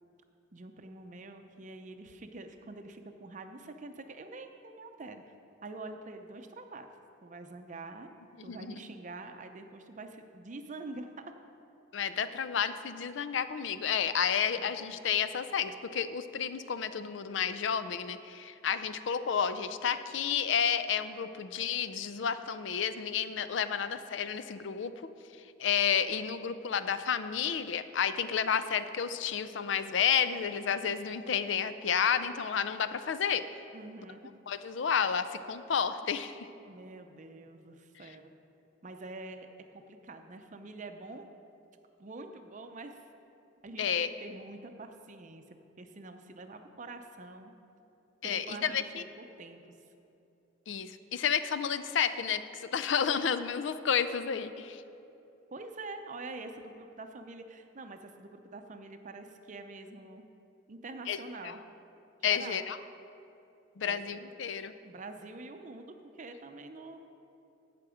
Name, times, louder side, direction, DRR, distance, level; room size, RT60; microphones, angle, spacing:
voice 1, 0.5-5.2 5.6-6.9 7.2-8.1 8.4-11.3 14.6-14.7 33.7-34.3 36.7-38.3 38.8-41.3 42.0-43.0 43.6-47.5 48.2-49.6 55.5-60.2 60.7-61.6 62.2-62.7 63.8-64.3 64.8-67.0, right 3 dB, 40° right, 7 dB, 0.6 m, -46 dB
voice 2, 8.4-8.7 11.9-24.9 25.6-33.4 34.5-36.5 43.8-44.1 48.2-49.0 50.7-54.8 61.1-61.2 61.4-61.5 62.2-62.8 63.8-64.7, left 7 dB, 65° left, 12 dB, 0.5 m, -31 dB
16.0 x 5.9 x 5.0 m, 2.8 s
head